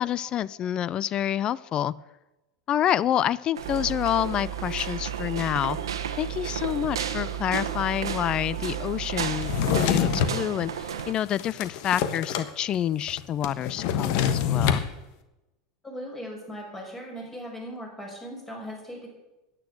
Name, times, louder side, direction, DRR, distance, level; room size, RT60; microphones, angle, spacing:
voice 1, 0.0-1.9 2.7-5.8 6.2-14.8, left 10 dB, 40° left, 21 dB, 0.4 m, -28 dB
sound 1, 3.6-10.4, right 12 dB, 60° right, 0.9 m, -37 dB
sound 2, 3.6-11.1, right 8 dB, 90° right, 1.0 m, -34 dB
Drawer open or close, 9.4-10.4 11.0-12.5 12.7-12.8 13.1-14.9, left 8 dB, 60° left, 1.2 m, -26 dB
voice 2, 15.8-19.1, equal, 15° left, 0 dB, 5.4 m, -39 dB
10.5 x 9.2 x 7.8 m, 1.0 s
hypercardioid pair, 95°, 2 cm